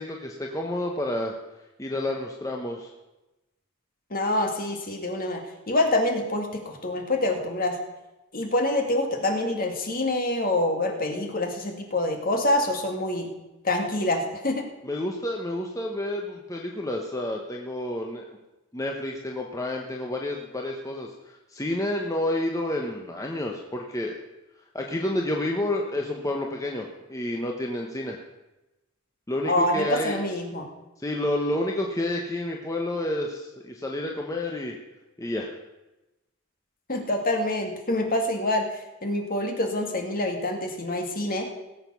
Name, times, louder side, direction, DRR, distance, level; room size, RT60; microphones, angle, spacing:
voice 1, 0.0-1.3 1.8-2.9 14.8-18.4 18.7-24.2 24.7-28.2 29.3-30.2 31.0-34.8 35.2-35.5, left 1 dB, 15° left, 0 dB, 1.0 m, -30 dB
voice 2, 4.1-5.4 5.7-7.8 8.3-13.3 13.6-14.7 29.5-30.7 36.9-38.7 39.0-41.5, left 1 dB, 45° left, 3 dB, 2.0 m, -26 dB
17.5 x 7.6 x 6.1 m, 1.0 s
head